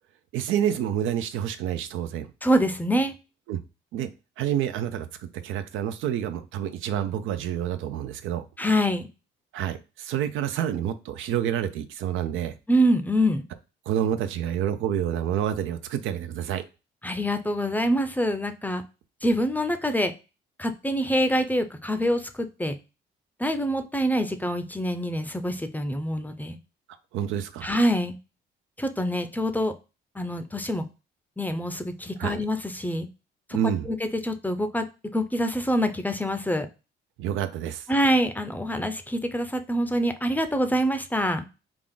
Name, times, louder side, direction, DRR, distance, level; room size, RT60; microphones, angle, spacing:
voice 1, 0.3-2.3 3.5-3.6 3.9-4.1 4.4-8.4 9.5-12.5 13.9-16.6 27.1-27.7 32.2-32.4 33.5-33.9 37.2-37.9, right 10 dB, 85° right, 10 dB, 0.5 m, -28 dB
voice 2, 2.4-3.1 8.6-9.1 12.7-13.4 17.0-18.8 19.2-20.1 20.6-22.7 23.4-26.6 27.6-28.2 28.8-29.7 30.2-30.9 31.4-33.1 33.9-34.9 35.1-36.7 37.9-41.4, equal, 10° left, 8 dB, 0.5 m, -25 dB
3.6 x 2.4 x 3.7 m, 0.30 s
cardioid pair, 90°, 20 cm